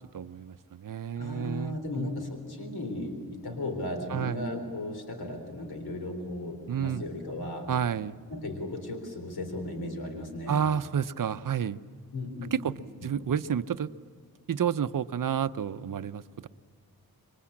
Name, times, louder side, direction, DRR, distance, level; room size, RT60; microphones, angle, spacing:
voice 1, 0.1-2.1 4.1-4.4 6.7-7.0 7.7-8.2 10.5-11.8 12.5-12.7 13.0-13.9 14.5-16.5, right 8 dB, 60° right, 13 dB, 0.7 m, -30 dB
voice 2, 1.2-7.7 8.3-10.6 12.1-13.1, left 1 dB, 75° left, 5 dB, 3.7 m, -36 dB
27.0 x 22.5 x 8.6 m, 2.1 s
wide cardioid pair, 140°, 37 cm